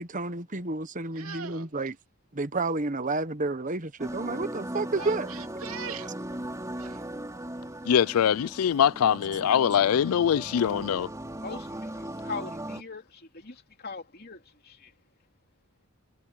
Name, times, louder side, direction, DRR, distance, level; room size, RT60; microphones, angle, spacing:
voice 1, 0.0-2.0 2.3-5.3, right 3 dB, 35° right, 1.3 m, -30 dB
voice 2, 1.1-1.7 5.0-6.2 6.7-7.1, right 6 dB, 85° right, 2.6 m, -41 dB
sound 1, 4.0-12.8, right 1 dB, 15° right, 3.1 m, -38 dB
voice 3, 7.9-11.1, left 9 dB, 85° left, 0.4 m, -23 dB
voice 4, 11.4-14.9, left 4 dB, 45° left, 3.1 m, -41 dB
head